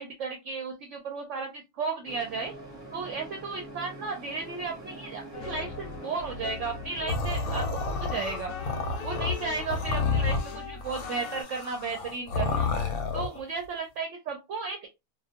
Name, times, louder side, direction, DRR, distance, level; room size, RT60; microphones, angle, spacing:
voice 1, 0.0-2.5 2.9-8.5 9.0-12.7 13.1-14.9, right 4 dB, 65° right, 2 dB, 0.8 m, -34 dB
sound 1, 2.0-7.0, right 1 dB, 25° right, 0.7 m, -44 dB
sound 2, 5.3-11.4, left 6 dB, 65° left, 0.9 m, -40 dB
sound 3, 7.1-13.4, left 4 dB, 90° left, 1.1 m, -30 dB
2.4 x 2.2 x 2.7 m, 0.23 s
omnidirectional pair, 1.5 m